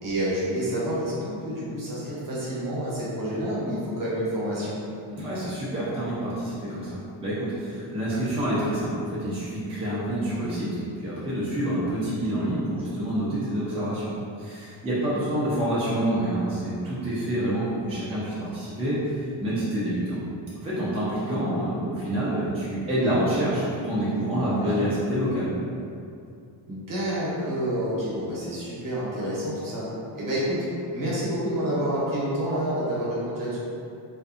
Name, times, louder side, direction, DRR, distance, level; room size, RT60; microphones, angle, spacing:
voice 1, 0.0-4.8 22.9-23.5 24.6-24.8 26.7-29.9 30.1-30.6 30.9-33.6, equal, 45° right, -8 dB, 0.8 m, -28 dB
voice 2, 5.1-14.1 14.4-20.2 20.6-25.5, right 1 dB, 15° right, -10 dB, 0.5 m, -27 dB
2.6 x 2.3 x 2.4 m, 2.5 s
cardioid pair, 125°, 47 cm